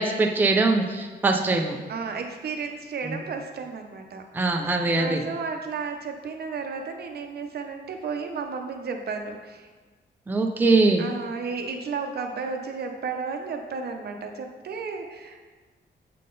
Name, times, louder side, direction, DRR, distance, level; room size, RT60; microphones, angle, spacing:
voice 1, 0.0-1.8 3.0-3.2 4.3-5.2 10.3-11.1, right 3 dB, 10° right, 2 dB, 0.4 m, -22 dB
voice 2, 1.9-4.2 4.6-9.7 11.0-15.4, right 5 dB, 55° right, 4 dB, 0.6 m, -33 dB
7.5 x 3.8 x 3.8 m, 1.3 s
wide cardioid pair, 140°, 19 cm